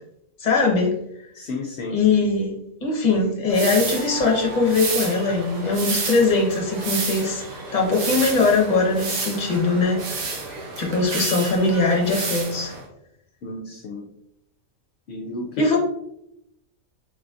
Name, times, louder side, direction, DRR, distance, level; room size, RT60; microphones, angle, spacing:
voice 1, 0.4-0.9 1.9-7.4 7.7-10.0 10.8-12.7 15.6-15.8, left 3 dB, 35° left, 0 dB, 0.9 m, -21 dB
voice 2, 1.3-2.0 13.4-14.1 15.1-15.8, left 3 dB, 65° left, 0 dB, 0.7 m, -31 dB
sound 1, 3.5-12.8, right 3 dB, 75° right, 1.2 m, -30 dB
4.0 x 3.8 x 2.4 m, 0.81 s
omnidirectional pair, 1.4 m